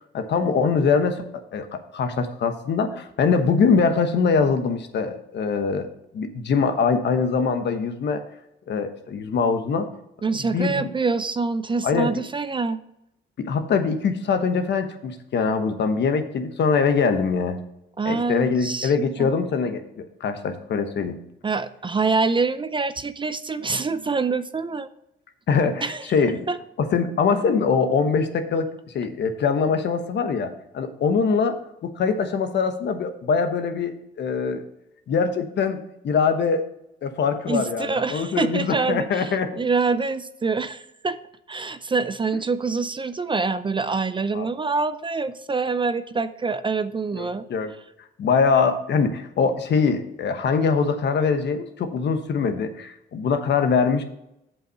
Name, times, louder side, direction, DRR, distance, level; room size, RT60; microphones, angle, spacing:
voice 1, 0.1-1.2 1.5-5.9 6.1-8.2 8.7-9.8 10.4-10.8 11.8-12.1 13.4-17.6 18.1-21.2 25.5-26.5 26.8-34.6 35.1-36.6 37.0-39.5 44.3-44.5 47.1-47.7 48.2-54.0, left 5 dB, 60° left, 8 dB, 1.1 m, -23 dB
voice 2, 10.2-12.8 18.0-18.9 19.2-19.3 21.4-24.9 25.8-26.1 26.5-26.6 37.5-41.2 41.5-47.5, right 4 dB, 25° right, 13 dB, 0.5 m, -25 dB
7.5 x 5.6 x 5.6 m, 0.82 s
cardioid pair, 90°, 20 cm